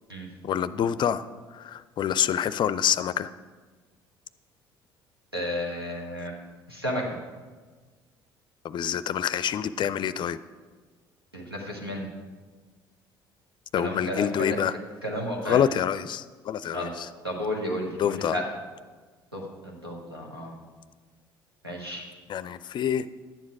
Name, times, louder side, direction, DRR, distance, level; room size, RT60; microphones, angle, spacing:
voice 1, 0.4-1.3 1.5-3.3 8.6-10.4 13.7-14.7 15.5-17.1 18.0-18.4 22.3-23.1, left 9 dB, 40° left, 15 dB, 0.4 m, -26 dB
voice 2, 5.3-6.3 6.7-7.0 11.3-12.1 13.8-14.6 15.0-15.6 16.7-16.9 17.2-18.4 19.3-20.5 21.6-22.0, equal, 90° right, -1 dB, 1.5 m, -32 dB
11.0 x 9.4 x 4.8 m, 1.4 s
figure-of-eight pair, 55°, 12 cm